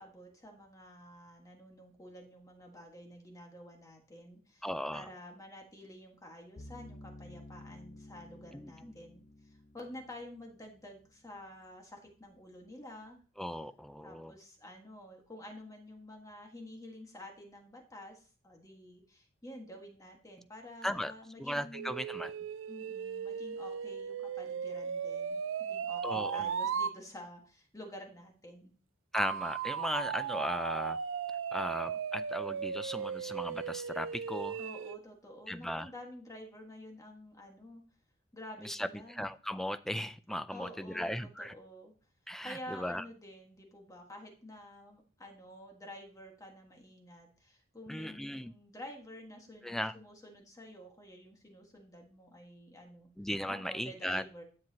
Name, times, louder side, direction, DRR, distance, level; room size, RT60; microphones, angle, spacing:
voice 1, 0.0-4.7 4.9-13.2 14.0-21.9 22.7-28.7 34.6-37.8 38.3-39.2 40.5-41.9 42.4-53.1 53.5-54.4, left 1 dB, 20° left, 1 dB, 1.6 m, -50 dB
voice 2, 4.6-5.1 8.5-8.9 13.4-14.3 20.8-21.1 21.4-22.3 26.0-26.5 29.1-31.0 31.5-34.6 35.5-35.9 38.6-41.5 42.3-43.0 47.9-48.5 49.6-49.9 53.2-54.2, equal, ahead, 12 dB, 0.3 m, -37 dB
sound 1, 6.6-11.7, left 1 dB, 35° left, 0.7 m, -53 dB
sound 2, 21.7-27.0 29.1-35.0, right 7 dB, 75° right, 0.4 m, -37 dB
10.5 x 7.6 x 2.8 m, 0.37 s
head